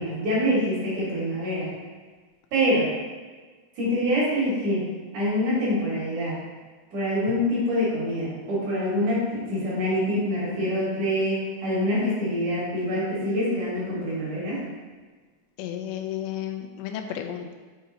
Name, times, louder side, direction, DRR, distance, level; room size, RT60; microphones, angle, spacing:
voice 1, 0.0-1.7 2.5-2.9 3.8-4.9 5.1-6.4 6.9-14.6, equal, 55° right, -7 dB, 2.4 m, -25 dB
voice 2, 15.6-17.5, left 10 dB, 80° left, 5 dB, 2.2 m, -33 dB
6.4 x 4.0 x 3.9 m, 1.4 s
omnidirectional pair, 4.9 m